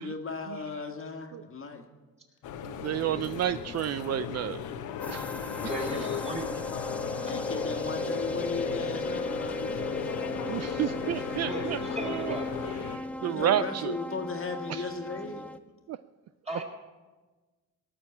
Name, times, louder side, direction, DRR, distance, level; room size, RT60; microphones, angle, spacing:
voice 1, 0.0-1.9 4.4-4.7 5.5-6.4 7.2-9.8 13.2-15.5, left 4 dB, 45° left, 4 dB, 1.7 m, -37 dB
sound 1, 2.4-13.0, left 8 dB, 80° left, 1.1 m, -36 dB
voice 2, 2.6-4.6 5.1-5.3 10.5-12.3 12.9-13.9 14.7-14.9 15.9-16.0, right 12 dB, 60° right, 14 dB, 0.4 m, -31 dB
sound 2, 5.0-15.6, left 1 dB, 5° left, 0.7 m, -36 dB
voice 3, 5.7-6.5 11.4-12.5 16.5-16.6, right 1 dB, 20° right, 1 dB, 3.7 m, -36 dB
18.0 x 6.6 x 8.6 m, 1.3 s
cardioid pair, 90°, 30 cm